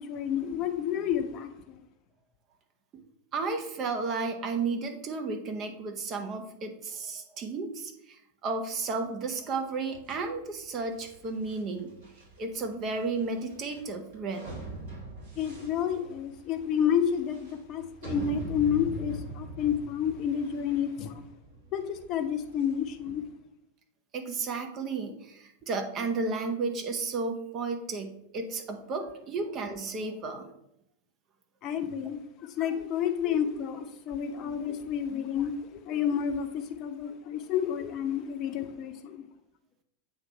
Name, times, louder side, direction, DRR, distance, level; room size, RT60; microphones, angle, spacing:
voice 1, 0.0-1.8 15.4-21.2 21.7-23.2 31.6-39.2, left 8 dB, 35° left, 0.8 m, -30 dB
voice 2, 3.3-11.9 12.4-14.5 24.1-30.5, right 4 dB, 30° right, 0.9 m, -33 dB
sound 1, 9.9-23.1, right 1 dB, 60° right, 2.7 m, -43 dB
7.7 x 3.0 x 5.6 m
figure-of-eight pair, 90°, 0 cm